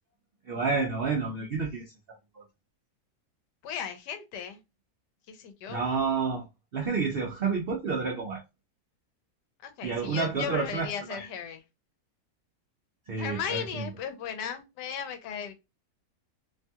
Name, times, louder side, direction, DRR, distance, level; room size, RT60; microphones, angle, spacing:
voice 1, 0.5-1.8 2.4-2.5 5.7-6.4 6.7-8.4 9.8-11.3 13.1-13.9, right 5 dB, 90° right, 0.5 m, -29 dB
voice 2, 3.6-4.6 5.3-5.9 9.6-11.6 13.1-15.5, left 7 dB, 85° left, 1.3 m, -36 dB
3.0 x 2.7 x 2.2 m
omnidirectional pair, 1.8 m